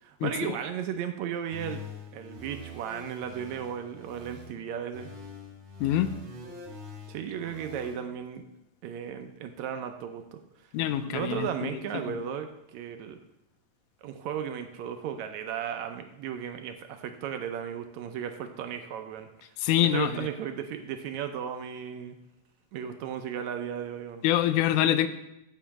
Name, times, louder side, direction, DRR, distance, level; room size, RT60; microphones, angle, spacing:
voice 1, 0.0-1.8 2.1-5.1 7.1-8.4 8.8-10.4 11.1-13.2 14.0-19.5 19.8-22.2 22.7-24.2, right 8 dB, 75° right, 7 dB, 1.9 m, -35 dB
sound 1, 1.5-4.5 4.9-7.9, left 1 dB, 40° right, 0.9 m, -44 dB
voice 2, 5.8-6.1 10.7-11.7 12.0-12.1 19.6-20.1 24.2-25.1, left 12 dB, 85° left, 11 dB, 2.1 m, -25 dB
7.9 x 5.6 x 7.3 m, 0.86 s
omnidirectional pair, 3.5 m